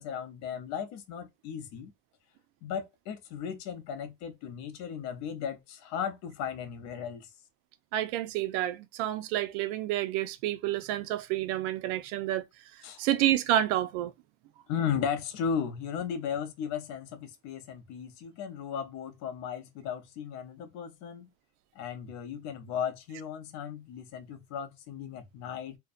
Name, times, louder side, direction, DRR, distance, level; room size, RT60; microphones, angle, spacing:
voice 1, 0.0-1.9 2.6-7.3 12.8-13.0 14.7-21.3 21.7-25.8, left 7 dB, 50° left, 0.6 m, -36 dB
voice 2, 7.9-12.4 12.7-14.1, right 13 dB, 80° right, 0.5 m, -29 dB
2.6 x 2.1 x 2.4 m
cardioid pair, 165°, 35 cm